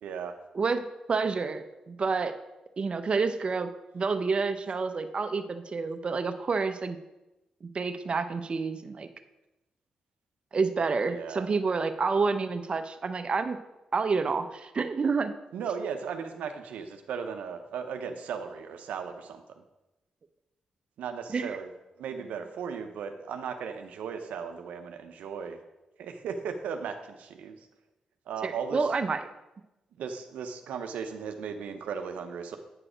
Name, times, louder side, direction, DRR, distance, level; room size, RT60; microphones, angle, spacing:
voice 1, 0.0-0.4 11.1-11.5 15.5-19.6 21.0-21.7 22.0-25.6 26.0-27.7 28.3-28.9 30.0-32.6, right 6 dB, 90° right, 6 dB, 0.6 m, -36 dB
voice 2, 1.1-2.3 2.8-7.0 7.6-9.1 10.5-13.6 13.9-15.3 21.3-21.5 28.4-29.2, right 4 dB, 45° right, 8 dB, 0.6 m, -29 dB
8.7 x 4.9 x 4.9 m, 0.99 s
cardioid pair, 65°, 2 cm